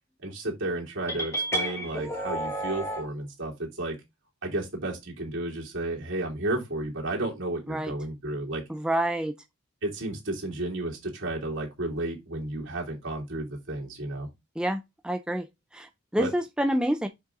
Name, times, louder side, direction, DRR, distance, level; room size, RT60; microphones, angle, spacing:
voice 1, 0.2-4.0 4.4-8.6 9.8-14.3 16.2-16.3, right 2 dB, 60° right, 3.0 m, -32 dB
sound 1, 1.1-3.1, right 1 dB, 15° left, 1.6 m, -31 dB
voice 2, 8.7-9.3 14.6-15.5 15.7-17.1, right 1 dB, 5° right, 0.3 m, -28 dB
6.6 x 5.4 x 3.7 m
head